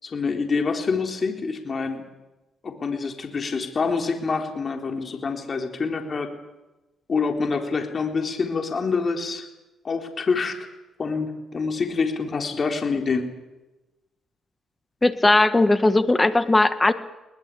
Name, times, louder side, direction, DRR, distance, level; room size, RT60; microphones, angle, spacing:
voice 1, 0.0-2.0 2.6-6.3 7.1-9.5 9.8-10.6 11.0-13.3, left 4 dB, 40° left, 4 dB, 3.8 m, -26 dB
voice 2, 15.0-16.9, left 2 dB, 15° left, 11 dB, 1.6 m, -18 dB
21.5 x 20.0 x 8.6 m, 1.1 s
cardioid pair, 90°, 0 cm